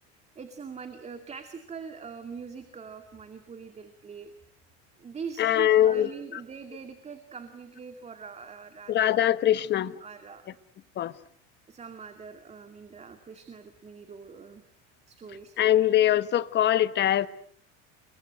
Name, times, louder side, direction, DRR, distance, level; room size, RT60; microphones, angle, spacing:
voice 1, 0.4-4.3 5.0-9.1 9.6-9.7 10.0-10.6 11.7-14.6 15.1-15.6, right 5 dB, 20° right, 2.3 m, -43 dB
voice 2, 5.4-6.1 8.9-9.9 11.0-11.1 15.6-17.3, left 12 dB, 30° left, 1.2 m, -22 dB
29.5 x 23.0 x 7.7 m
supercardioid pair, 145°, 34 cm